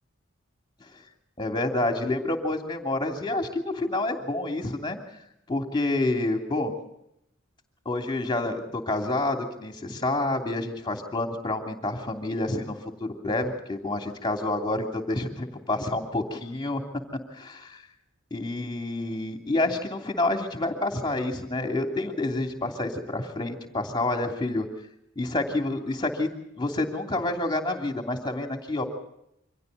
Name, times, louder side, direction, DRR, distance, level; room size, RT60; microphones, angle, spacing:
voice 1, 1.4-5.0 5.5-6.7 7.8-16.8 17.3-17.8 18.3-24.7 25.2-26.3 26.6-28.8, left 2 dB, 20° left, 3 dB, 2.9 m, -28 dB
28.5 x 25.0 x 4.1 m, 0.79 s
head